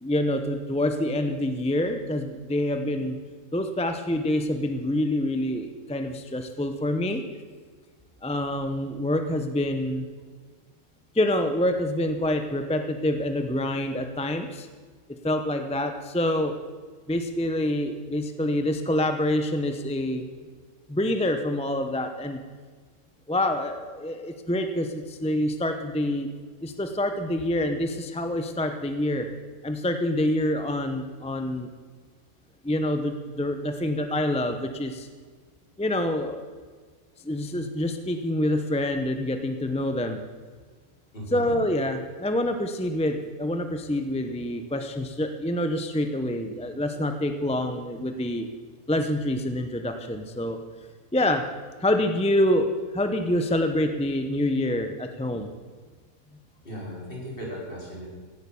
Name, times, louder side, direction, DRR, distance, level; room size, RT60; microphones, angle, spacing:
voice 1, 0.0-3.2 3.5-7.2 8.2-10.1 11.1-14.7 15.2-16.5 17.1-20.3 20.9-22.4 23.3-26.3 26.6-29.3 29.6-31.7 32.6-35.1 35.8-36.4 37.2-40.2 41.3-48.5 48.9-50.6 51.1-51.4 51.8-55.5, left 1 dB, 10° left, 7 dB, 0.4 m, -26 dB
voice 2, 41.1-41.6 56.6-58.1, equal, 35° left, -4 dB, 4.5 m, -36 dB
16.5 x 9.1 x 7.1 m, 1.5 s
omnidirectional pair, 1.6 m